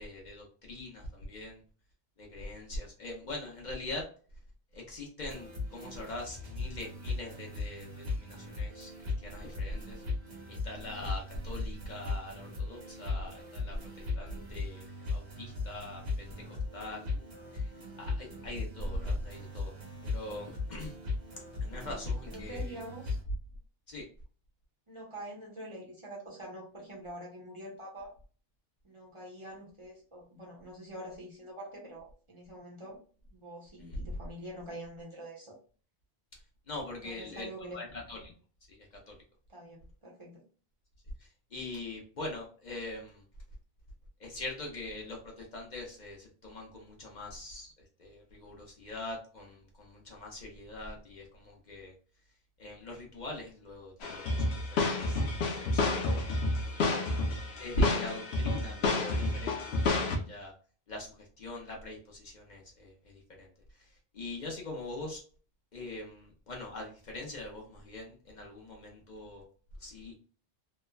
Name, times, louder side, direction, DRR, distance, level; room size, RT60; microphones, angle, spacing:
voice 1, 0.0-1.6 2.2-4.0 4.7-10.0 10.5-14.8 15.1-16.3 16.7-17.2 17.5-17.7 18.0-19.7 20.0-21.0 21.6-22.8 23.9-24.1 36.3-36.4 36.7-38.3 38.7-39.2 41.2-43.2 44.2-51.9 52.6-55.2 55.5-56.3 56.7-57.1 57.5-60.5 60.9-65.2 65.7-69.4 69.8-70.1, left 1 dB, 50° left, 0 dB, 0.7 m, -41 dB
sound 1, 5.3-23.2, left 3 dB, 85° right, 1.4 m, -38 dB
voice 2, 22.3-23.2 24.9-28.1 28.8-33.0 33.3-35.6 37.0-37.8 39.5-40.4, right 1 dB, 35° right, -4 dB, 0.8 m, -45 dB
sound 2, 54.0-60.2, left 3 dB, 90° left, 0.8 m, -30 dB
3.1 x 2.1 x 2.2 m, 0.41 s
omnidirectional pair, 1.0 m